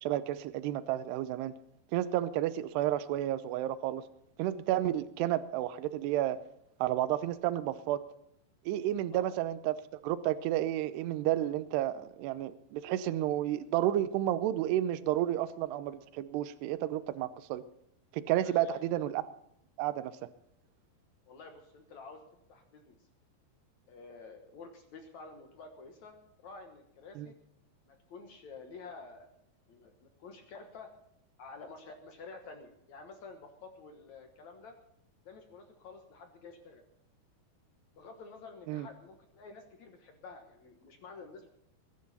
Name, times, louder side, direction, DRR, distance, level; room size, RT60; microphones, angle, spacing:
voice 1, 0.0-1.5 1.9-4.0 4.4-6.4 6.8-8.0 8.7-9.8 10.0-17.6 18.1-19.2 19.8-20.1 27.2-27.3 38.7-38.9, right 13 dB, 80° right, 13 dB, 2.8 m, -31 dB
voice 2, 18.4-18.8 21.3-22.2 22.5-23.0 23.9-27.3 27.9-29.3 29.7-30.9 31.4-34.8 35.3-36.8 37.9-41.5, left 4 dB, 65° left, 5 dB, 1.9 m, -50 dB
21.0 x 11.5 x 4.2 m, 0.74 s
omnidirectional pair, 4.9 m